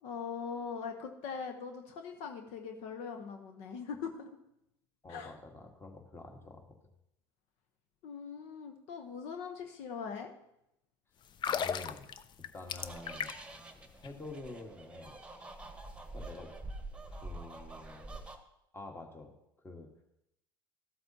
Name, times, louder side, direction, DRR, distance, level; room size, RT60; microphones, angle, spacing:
voice 1, 0.0-4.3 5.1-5.3 8.0-10.3, left 6 dB, 60° left, 5 dB, 0.9 m, -41 dB
voice 2, 5.0-6.8 11.5-12.1 12.5-13.3 14.0-15.4 16.1-16.5 17.0-18.2 18.7-19.3 19.6-19.9, left 2 dB, 20° left, 3 dB, 1.6 m, -48 dB
sound 1, 11.3-13.6 13.9-14.1, left 8 dB, 35° left, 0.6 m, -36 dB
sound 2, 12.8-18.4, right 2 dB, 10° right, 1.2 m, -46 dB
13.5 x 7.8 x 2.8 m, 0.82 s
hypercardioid pair, 80°, 13 cm